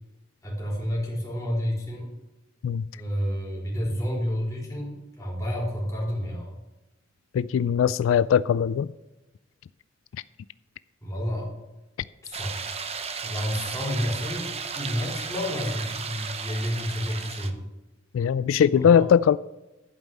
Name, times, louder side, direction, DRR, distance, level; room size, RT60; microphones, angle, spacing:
voice 1, 0.4-2.1 2.9-6.5 11.0-11.5 12.2-12.6 13.2-14.5 14.7-17.5 18.8-19.0, equal, 15° left, -3 dB, 3.6 m, -30 dB
voice 2, 7.3-8.9 18.1-19.4, left 8 dB, 85° left, 16 dB, 0.3 m, -20 dB
sound 1, 12.3-17.5, right 5 dB, 30° right, 0.7 m, -34 dB
11.5 x 5.4 x 7.5 m, 1.0 s
head